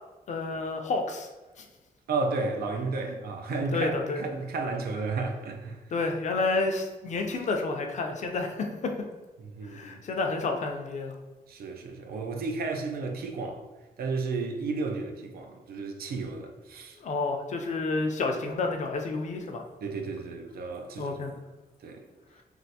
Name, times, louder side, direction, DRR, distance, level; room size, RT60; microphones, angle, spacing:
voice 1, 0.3-1.3 1.6-1.7 3.1-3.2 3.5-4.2 5.9-8.8 9.6-11.1 17.0-19.6 21.0-21.3, left 3 dB, 50° left, 0.4 m, -30 dB
voice 2, 2.1-5.9 9.4-10.0 11.5-13.6 14.0-17.0 19.8-21.2 21.8-22.1, right 3 dB, 75° right, 0.4 m, -33 dB
3.3 x 2.4 x 2.7 m
wide cardioid pair, 175°, 16 cm